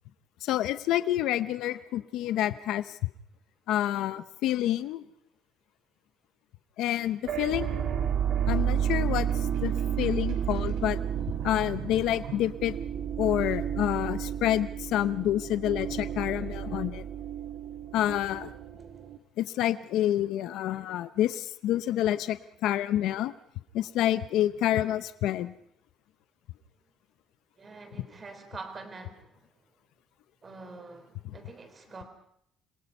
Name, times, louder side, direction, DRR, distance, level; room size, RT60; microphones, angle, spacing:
voice 1, 0.4-3.0 3.7-5.0 6.8-7.8 8.5-9.3 9.6-11.0 11.4-12.7 13.2-17.0 17.9-18.5 19.4-23.3 23.7-25.6 31.2-31.3, left 12 dB, 65° left, 12 dB, 0.8 m, -28 dB
sound 1, 7.2-19.2, right 9 dB, 45° right, 1.8 m, -31 dB
Sink (filling or washing), 9.2-12.9, right 7 dB, 90° right, 5.6 m, -44 dB
voice 2, 27.6-29.3 30.4-32.0, right 3 dB, 20° right, 7 dB, 3.4 m, -45 dB
27.0 x 22.0 x 5.5 m, 0.72 s
cardioid pair, 175°, 0 cm